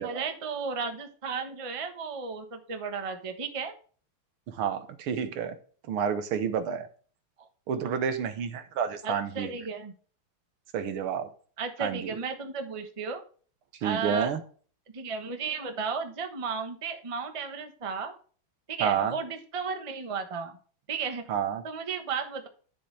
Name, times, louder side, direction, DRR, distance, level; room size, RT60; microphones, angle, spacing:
voice 1, 0.0-3.7 7.4-7.5 9.0-9.9 11.6-13.2 13.8-14.3 14.9-18.1 18.7-20.6 20.9-21.2 21.6-22.5, right 5 dB, 25° right, 6 dB, 0.8 m, -34 dB
voice 2, 4.5-5.6 5.9-6.9 7.7-9.5 10.7-11.3 11.8-12.1 13.8-14.4 18.8-19.1 21.3-21.6, right 7 dB, 85° right, 9 dB, 2.0 m, -29 dB
10.5 x 7.1 x 3.3 m, 0.42 s
omnidirectional pair, 2.3 m